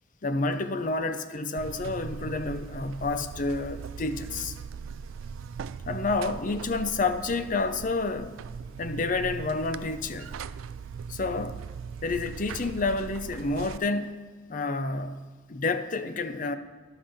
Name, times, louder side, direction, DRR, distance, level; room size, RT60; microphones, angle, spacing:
voice 1, 0.2-4.6 5.9-8.4 8.8-10.3 11.1-11.6 12.0-14.1 14.5-16.6, left 3 dB, 40° left, 10 dB, 0.6 m, -29 dB
Buzz, 1.6-13.8, right 6 dB, 80° right, 0.3 m, -40 dB
11.5 x 5.7 x 6.6 m, 1.4 s
head